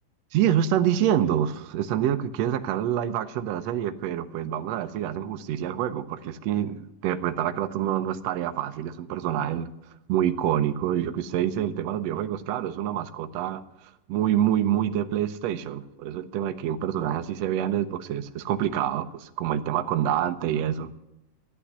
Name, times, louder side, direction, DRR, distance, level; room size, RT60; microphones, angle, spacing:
voice 1, 0.3-9.7 10.1-20.9, right 10 dB, 80° right, 9 dB, 1.5 m, -27 dB
13.5 x 8.6 x 8.0 m, 0.92 s
omnidirectional pair, 3.9 m